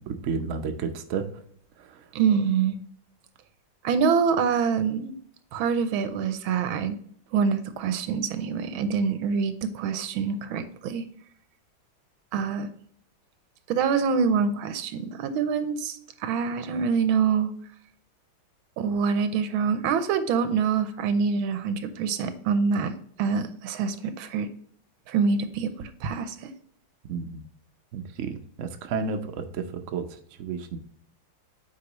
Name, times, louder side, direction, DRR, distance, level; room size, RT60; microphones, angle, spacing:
voice 1, 0.0-1.4 1.8-2.1 27.1-27.4 27.9-30.8, right 5 dB, 65° right, 5 dB, 0.7 m, -32 dB
voice 2, 2.1-2.8 3.8-5.1 5.5-7.0 7.3-11.0 12.3-12.7 13.7-17.5 18.8-22.9 23.2-24.5 25.1-26.5, right 6 dB, 85° right, 10 dB, 1.5 m, -25 dB
8.5 x 4.6 x 3.0 m, 0.62 s
omnidirectional pair, 2.2 m